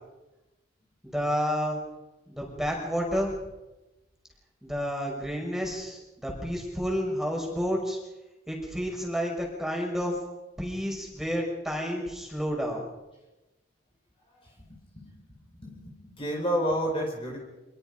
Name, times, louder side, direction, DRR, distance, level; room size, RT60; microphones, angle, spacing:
voice 1, 1.0-1.8 2.3-3.4 4.6-8.0 8.5-10.1 10.6-12.9, equal, ahead, -1 dB, 6.0 m, -30 dB
voice 2, 14.7-15.1 15.6-17.4, equal, 30° left, 0 dB, 4.9 m, -30 dB
27.0 x 22.0 x 5.4 m, 1.0 s
head